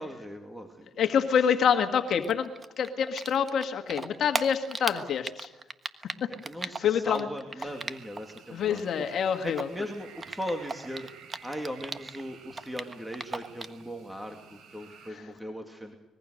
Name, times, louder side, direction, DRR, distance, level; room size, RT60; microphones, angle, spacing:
voice 1, 0.0-0.9 6.4-9.1 9.4-16.0, equal, 5° right, 3 dB, 2.6 m, -38 dB
voice 2, 1.0-2.5 2.8-5.5 6.2-6.3 6.6-7.3 8.5-9.7, left 7 dB, 65° left, 6 dB, 1.8 m, -26 dB
Typing, 2.2-8.4 8.6-12.2 12.5-13.8, right 3 dB, 30° right, 1.4 m, -36 dB
sound 1, 7.6-15.1, right 6 dB, 75° right, 5.6 m, -52 dB
25.0 x 21.5 x 6.5 m, 1.0 s
cardioid pair, 90°, 0 cm